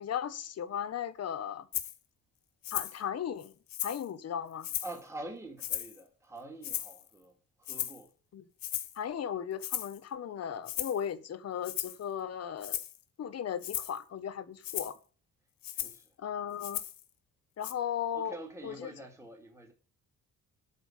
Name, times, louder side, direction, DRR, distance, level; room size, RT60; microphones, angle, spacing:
voice 1, 0.0-1.7 2.7-3.5 3.8-4.7 8.3-8.5 8.9-12.8 13.2-15.0 16.2-16.8 17.6-18.4 18.6-18.9, left 9 dB, 50° left, 1.5 m, -36 dB
Rattle (instrument), 1.7-2.0 2.6-3.0 3.4-4.1 4.6-5.0 5.6-6.0 6.6-7.1 7.7-8.0 8.6-9.0 9.6-10.0 10.7-11.0 11.6-12.0 12.6-13.0 13.6-14.0 14.6-15.0 15.6-16.0 16.6-17.0 17.6-17.7, left 12 dB, 90° left, 1.9 m, -36 dB
voice 2, 4.8-7.3 7.6-8.1 15.7-16.1 18.1-19.7, right 2 dB, 10° right, 2.4 m, -45 dB
12.5 x 5.1 x 8.8 m
cardioid pair, 175°, 33 cm